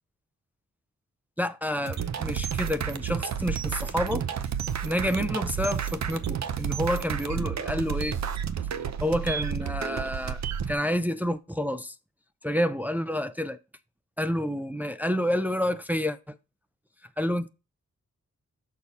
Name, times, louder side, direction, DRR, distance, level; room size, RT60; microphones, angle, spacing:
voice 1, 1.4-4.3 4.8-8.2 9.0-10.4 10.7-11.9 12.4-13.6 14.2-16.4 17.2-17.5, equal, 5° right, 0.4 m, -29 dB
sound 1, 1.9-10.7, right 8 dB, 65° right, 0.7 m, -31 dB
6.6 x 5.4 x 4.1 m
wide cardioid pair, 160°, 30 cm